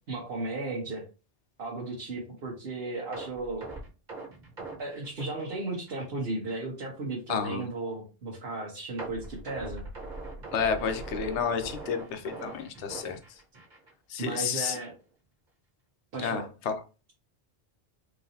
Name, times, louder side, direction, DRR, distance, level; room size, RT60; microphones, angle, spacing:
voice 1, 0.1-1.0 1.6-3.7 4.8-9.9 14.2-14.9 16.1-16.5, right 2 dB, 65° right, 1.2 m, -35 dB
sound 1, 3.1-6.2 6.5-6.6 7.1-7.2 9.0-13.9 14.2-14.4 14.8-14.9, right 2 dB, 45° right, 1.3 m, -41 dB
voice 2, 7.3-7.6 10.5-13.2 14.1-14.8 16.2-16.8, left 6 dB, 85° left, 0.9 m, -30 dB
3.9 x 3.0 x 2.7 m
omnidirectional pair, 1.1 m